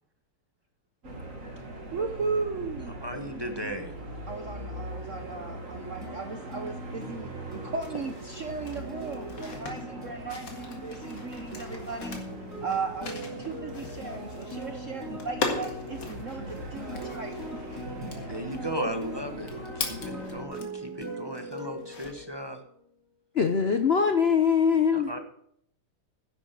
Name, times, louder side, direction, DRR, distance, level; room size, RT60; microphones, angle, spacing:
sound 1, 1.0-20.4, right 1 dB, 35° right, 2.3 m, -41 dB
voice 1, 1.9-3.0 4.3-12.2 12.6-17.4, right 4 dB, 60° right, 6 dB, 0.8 m, -36 dB
voice 2, 3.0-3.9 18.2-22.6 24.9-25.2, right 1 dB, 20° right, 5 dB, 0.6 m, -36 dB
sound 2, 6.0-22.7, equal, 5° left, 5.9 m, -42 dB
sound 3, 7.5-20.9 21.3-22.4, left 4 dB, 55° left, 2.5 m, -39 dB
voice 3, 23.3-25.1, left 6 dB, 70° left, 7 dB, 0.5 m, -22 dB
10.5 x 8.5 x 7.4 m, 0.68 s
omnidirectional pair, 2.4 m